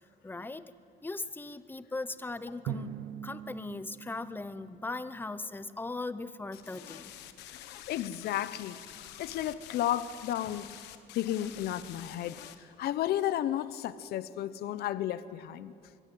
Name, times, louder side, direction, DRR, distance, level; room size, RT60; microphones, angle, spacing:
voice 1, 0.2-0.7 1.0-2.9 3.2-7.1, left 3 dB, 10° left, 13 dB, 0.8 m, -38 dB
Drum, 2.7-5.4, right 10 dB, 85° right, 1.0 m, -42 dB
sound 1, 6.5-12.6, left 12 dB, 90° left, 1.3 m, -48 dB
voice 2, 7.9-8.8 9.2-10.7 11.1-15.7, left 12 dB, 70° left, 15 dB, 0.8 m, -33 dB
23.5 x 16.5 x 9.3 m, 2.4 s
cardioid pair, 110°, 17 cm